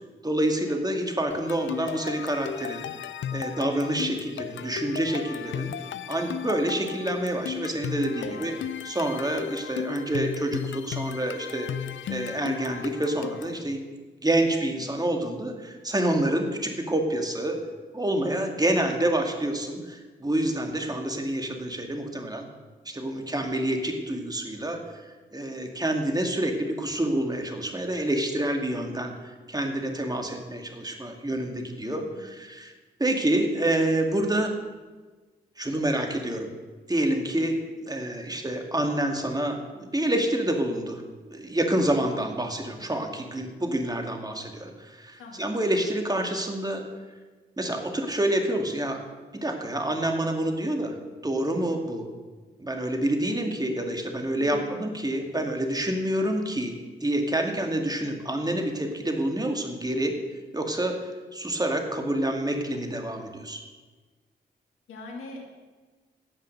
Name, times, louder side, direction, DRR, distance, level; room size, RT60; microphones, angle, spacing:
voice 1, 0.2-2.8 3.3-5.7 6.1-8.5 8.8-11.7 12.1-13.8 14.2-17.6 17.9-22.4 22.9-25.0 25.3-32.0 32.4-32.7 33.0-34.5 35.6-36.5 36.9-46.8 47.6-49.0 49.3-50.9 51.2-52.1 52.6-56.7 57.0-60.1 60.5-63.6, right 1 dB, 20° right, 3 dB, 2.4 m, -27 dB
sound 1, 1.3-13.6, left 9 dB, 65° left, 0.5 m, -35 dB
voice 2, 31.8-32.4 45.2-45.6 54.4-54.8 64.9-65.4, left 2 dB, 85° left, 0 dB, 2.4 m, -43 dB
16.0 x 5.8 x 6.7 m, 1.3 s
supercardioid pair, 40°, 21 cm